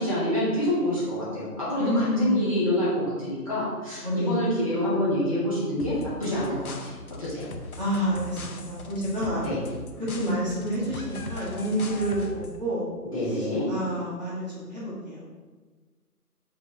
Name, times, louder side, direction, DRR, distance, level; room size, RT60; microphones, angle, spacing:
voice 1, 0.0-6.9 7.2-7.5 9.4-9.6 13.1-13.7, left 1 dB, 20° left, -10 dB, 0.9 m, -27 dB
voice 2, 1.8-3.2 4.0-4.4 7.8-9.5 10.0-12.9 13.4-15.3, equal, 25° right, -10 dB, 1.3 m, -29 dB
sound 1, 5.8-12.6, left 3 dB, 65° left, 0.6 m, -39 dB
4.9 x 3.0 x 3.6 m, 1.4 s
figure-of-eight pair, 165°, 47 cm